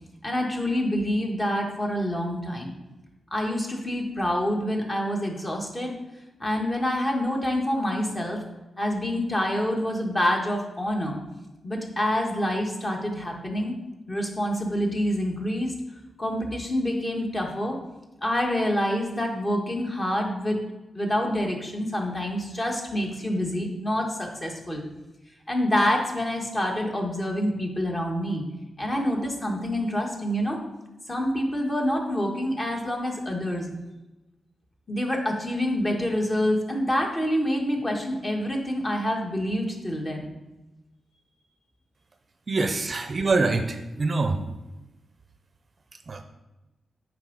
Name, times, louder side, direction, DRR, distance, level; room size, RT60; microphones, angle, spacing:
voice 1, 0.2-2.7 3.3-5.9 6.4-8.4 8.8-11.2 11.6-13.7 14.1-15.7 16.2-17.7 18.2-20.6 20.9-24.8 25.5-28.4 28.8-30.6 31.1-33.7 34.9-40.3, equal, 25° left, 1 dB, 1.4 m, -27 dB
voice 2, 42.5-44.4 46.1-46.2, right 3 dB, 40° right, 7 dB, 0.5 m, -25 dB
7.3 x 4.9 x 4.0 m, 1.0 s
cardioid pair, 90°, 0 cm